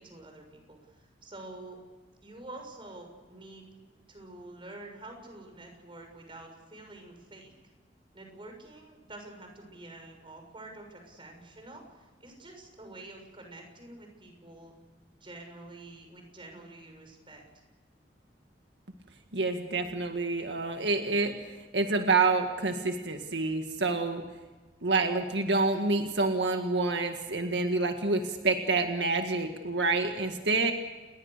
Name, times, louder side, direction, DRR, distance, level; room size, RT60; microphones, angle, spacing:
voice 1, 0.0-1.8 2.2-3.6 4.1-7.5 8.1-14.7 15.1-17.4, right 2 dB, 30° right, 4 dB, 6.6 m, -48 dB
voice 2, 19.3-21.3 21.7-24.2 24.8-30.7, right 3 dB, 85° right, 5 dB, 1.9 m, -27 dB
29.0 x 21.0 x 6.8 m, 1.3 s
head